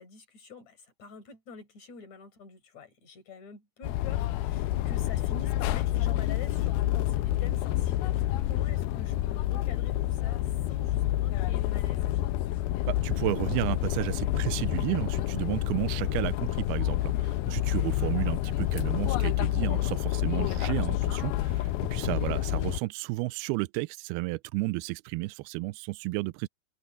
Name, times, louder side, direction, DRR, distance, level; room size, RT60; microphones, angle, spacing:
voice 1, 0.0-12.1 16.0-16.1 17.6-17.7, left 5 dB, 45° left, 6.3 m, -47 dB
sound 1, 3.8-22.8, left 14 dB, 85° left, 2.5 m, -28 dB
voice 2, 12.9-26.5, right 22 dB, 85° right, 2.5 m, -32 dB
open air
omnidirectional pair, 4.5 m